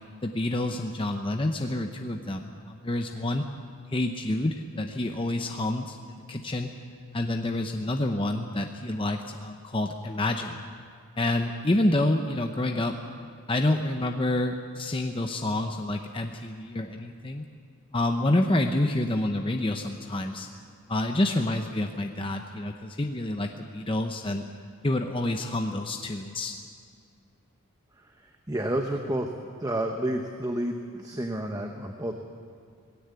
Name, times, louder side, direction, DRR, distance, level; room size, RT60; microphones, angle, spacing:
voice 1, 0.2-3.5 3.9-6.7 7.1-10.6 11.2-13.0 13.5-17.5 17.9-20.5 20.9-24.4 24.8-26.5, left 1 dB, 25° left, 4 dB, 0.7 m, -28 dB
voice 2, 28.5-29.3 29.6-32.2, right 1 dB, 15° right, 4 dB, 0.9 m, -30 dB
19.0 x 16.5 x 8.2 m, 2.3 s
head